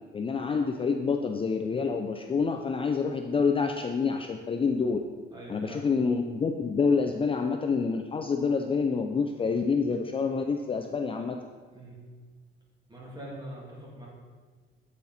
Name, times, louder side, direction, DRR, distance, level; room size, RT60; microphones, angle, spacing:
voice 1, 0.1-5.0 5.5-11.4, left 5 dB, 25° left, 4 dB, 0.4 m, -27 dB
voice 2, 5.3-5.9 11.7-12.0 12.9-14.1, right 1 dB, 20° right, -4 dB, 2.2 m, -43 dB
8.3 x 4.3 x 4.0 m, 1.5 s
cardioid pair, 90°, 20 cm